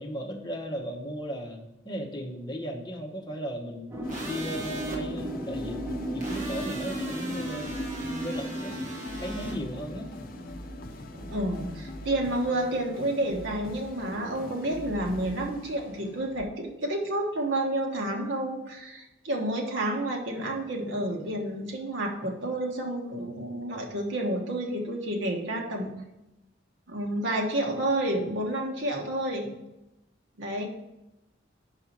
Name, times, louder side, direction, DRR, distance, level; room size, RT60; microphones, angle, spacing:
voice 1, 0.0-3.9 4.2-5.9 6.1-7.7 8.2-8.8 9.2-10.1, equal, 20° left, 0 dB, 0.9 m, -36 dB
sound 1, 3.9-13.3, right 1 dB, 15° right, 0.6 m, -37 dB
sound 2, 4.0-16.4, left 1 dB, 45° left, 0.6 m, -43 dB
sound 3, 4.1-5.0 6.2-9.6, right 1 dB, 40° right, 1.2 m, -40 dB
voice 2, 11.1-26.0 26.9-29.5 30.4-30.7, right 1 dB, 75° right, 1 dB, 1.3 m, -30 dB
5.3 x 4.8 x 5.9 m, 0.94 s
head